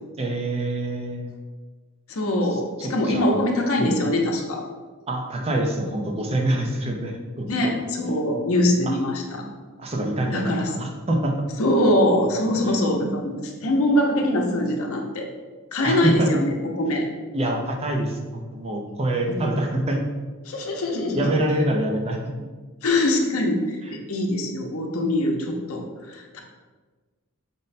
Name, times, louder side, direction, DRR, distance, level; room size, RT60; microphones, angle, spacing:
voice 1, 0.2-1.3 3.0-3.4 3.8-4.0 5.1-7.5 8.9-9.0 9.8-11.4 15.8-16.3 17.3-20.0 21.1-22.2, right 1 dB, 30° right, 2 dB, 0.5 m, -25 dB
voice 2, 2.1-4.6 7.5-9.4 10.3-10.8 11.6-15.3 15.7-17.0 19.2-19.5 20.4-21.2 22.8-23.8 24.1-26.4, left 1 dB, 70° left, 2 dB, 0.7 m, -23 dB
5.1 x 2.1 x 4.1 m, 1.4 s
head